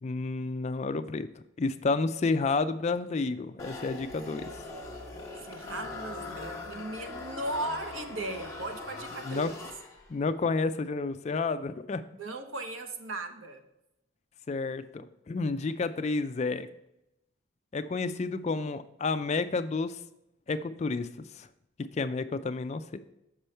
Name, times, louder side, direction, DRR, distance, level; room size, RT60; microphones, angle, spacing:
voice 1, 0.0-1.3 1.6-4.6 9.2-9.5 10.1-12.0 14.5-16.7 17.7-20.0 20.5-21.5 21.8-23.0, left 3 dB, 35° left, 11 dB, 0.3 m, -30 dB
sound 1, 3.6-10.2, left 3 dB, 15° left, 1.1 m, -41 dB
voice 2, 5.4-9.5 12.2-13.6, right 2 dB, 70° right, 6 dB, 0.9 m, -37 dB
6.7 x 5.5 x 4.4 m, 0.86 s
head